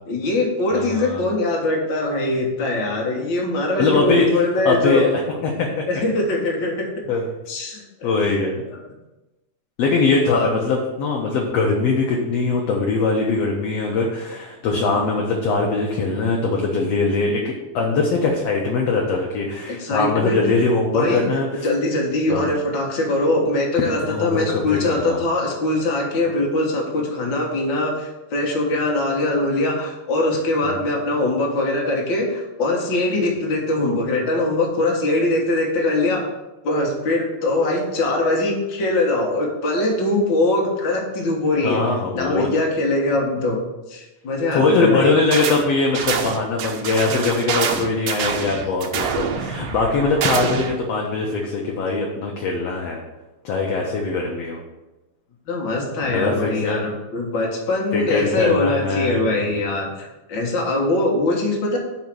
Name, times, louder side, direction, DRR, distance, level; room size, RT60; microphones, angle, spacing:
voice 1, 0.0-5.1 5.9-7.0 7.5-8.4 10.3-10.5 19.7-20.4 20.9-21.3 21.6-36.3 36.6-43.6 43.9-45.1 55.5-61.8, left 2 dB, 45° left, -1 dB, 1.7 m, -22 dB
voice 2, 0.7-1.2 3.8-4.3 4.6-5.8 7.1-7.3 8.0-8.5 9.8-21.5 22.3-22.5 23.7-25.2 30.6-30.8 41.6-42.5 44.5-53.0 53.4-54.6 56.1-56.8 57.9-59.6, left 3 dB, 70° left, -1 dB, 1.6 m, -21 dB
sound 1, 45.3-45.6 45.9-50.8, right 6 dB, 75° right, 1.9 m, -26 dB
5.5 x 4.8 x 6.1 m, 1.0 s
omnidirectional pair, 3.6 m